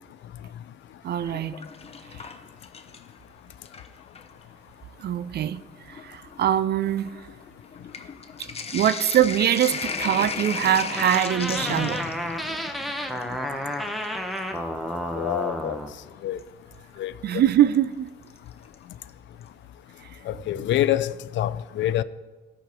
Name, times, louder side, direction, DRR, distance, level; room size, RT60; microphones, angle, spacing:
voice 1, 1.0-1.6 2.1-2.3 5.0-5.6 5.9-7.2 8.4-12.0 17.2-18.1 20.6-20.7, right 11 dB, 55° right, 0.5 m, -23 dB
Sink (filling or washing), 1.1-3.2 3.5-4.3 5.1-5.2 5.5-14.6 16.4-16.5 18.3-18.7 19.1-19.2 19.4-19.5, left 5 dB, 30° left, 0.7 m, -35 dB
sound 1, 11.0-15.9, equal, ahead, 0.8 m, -31 dB
voice 2, 15.1-15.8 16.2-16.4 17.0-17.1 20.3-22.0, left 12 dB, 70° left, 0.4 m, -26 dB
13.0 x 5.0 x 5.2 m
cardioid pair, 90°, 20 cm